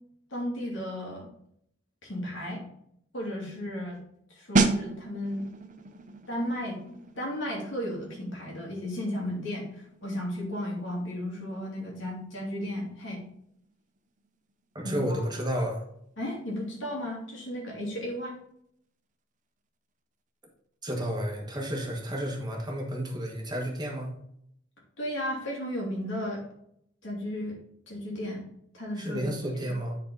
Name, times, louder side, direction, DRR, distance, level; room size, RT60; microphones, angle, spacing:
voice 1, 0.3-1.3 2.0-2.6 3.1-4.0 4.4-5.5 6.3-13.2 14.8-15.2 16.2-18.4 25.0-26.4 27.0-27.6 27.9-28.4 28.7-29.2 29.5-29.7, left 1 dB, 70° left, -3 dB, 2.7 m, -34 dB
sound 1, 4.6-15.1 15.3-15.6, right 3 dB, 40° right, 0.7 m, -34 dB
voice 2, 14.7-15.8 20.8-24.1 29.0-30.0, equal, 20° right, 1 dB, 1.3 m, -31 dB
9.9 x 4.1 x 4.0 m, 0.71 s
head